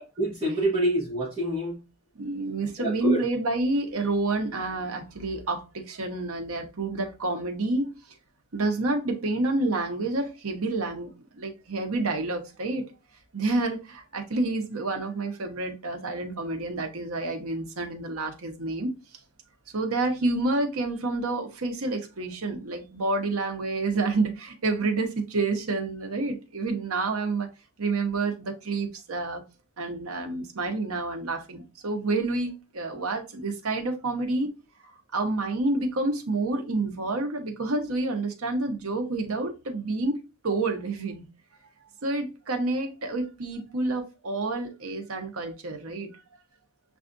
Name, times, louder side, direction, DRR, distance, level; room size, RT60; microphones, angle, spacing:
voice 1, 0.0-1.8 2.8-3.3, right 1 dB, 20° right, 1.1 m, -27 dB
voice 2, 2.2-7.9 8.5-12.9 13.3-19.0 19.7-27.5 27.8-29.4 29.8-34.5 34.8-41.3 42.0-46.2, right 2 dB, 80° right, 0.9 m, -29 dB
6.8 x 2.4 x 2.5 m
head